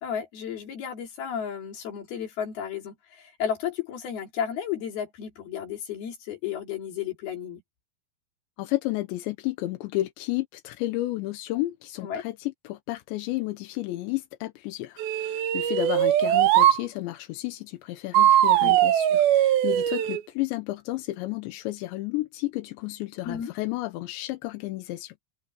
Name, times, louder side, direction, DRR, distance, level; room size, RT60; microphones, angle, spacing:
voice 1, 0.0-7.6 12.0-12.2 18.6-18.8 23.2-23.5, left 8 dB, 60° left, 5.0 m, -33 dB
voice 2, 8.6-25.1, left 17 dB, 85° left, 3.2 m, -32 dB
sound 1, 15.0-16.8 18.1-20.2, right 12 dB, 70° right, 2.6 m, -20 dB
omnidirectional pair, 5.0 m